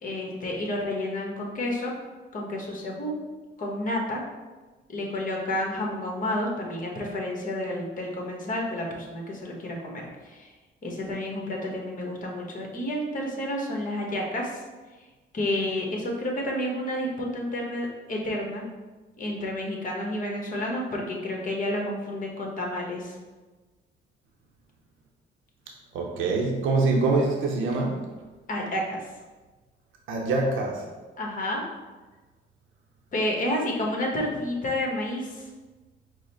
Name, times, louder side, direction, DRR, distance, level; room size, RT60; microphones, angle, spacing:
voice 1, 0.0-1.9 2.3-3.2 3.6-4.2 4.9-10.5 10.8-14.6 15.3-18.7 19.2-23.2 28.5-29.1 31.2-31.6 33.1-35.5, left 1 dB, 40° left, 0 dB, 1.1 m, -30 dB
voice 2, 25.9-28.0 30.1-30.9, right 3 dB, 85° right, 0 dB, 0.6 m, -24 dB
4.8 x 2.1 x 4.3 m, 1.3 s
cardioid pair, 90°, 20 cm